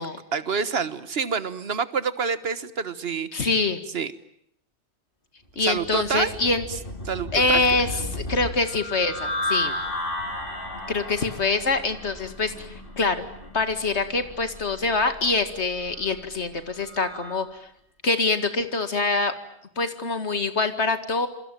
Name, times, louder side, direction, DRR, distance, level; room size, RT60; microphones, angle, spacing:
voice 1, 0.3-3.5 3.9-4.1 5.6-6.3 7.1-7.6 7.9-8.0, right 5 dB, 65° right, 13 dB, 1.5 m, -27 dB
voice 2, 3.3-3.8 5.6-6.6 7.3-9.7 10.9-13.3 13.5-17.7 18.0-19.3 19.8-21.3, left 3 dB, 85° left, 9 dB, 2.4 m, -25 dB
sound 1, 5.6-17.4, left 1 dB, 50° left, 4.3 m, -34 dB
27.5 x 23.5 x 9.1 m, 0.71 s
omnidirectional pair, 1.1 m